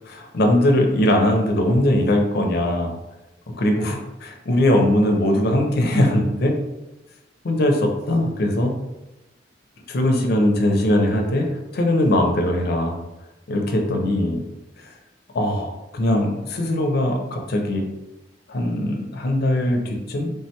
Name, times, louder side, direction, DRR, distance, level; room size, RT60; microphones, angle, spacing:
voice 1, 0.1-3.0 3.6-4.0 4.5-6.5 7.4-8.7 9.9-13.0 13.5-14.4 15.3-17.9 18.5-20.3, left 1 dB, 60° left, 3 dB, 0.5 m, -20 dB
3.3 x 2.2 x 2.8 m, 1.0 s
head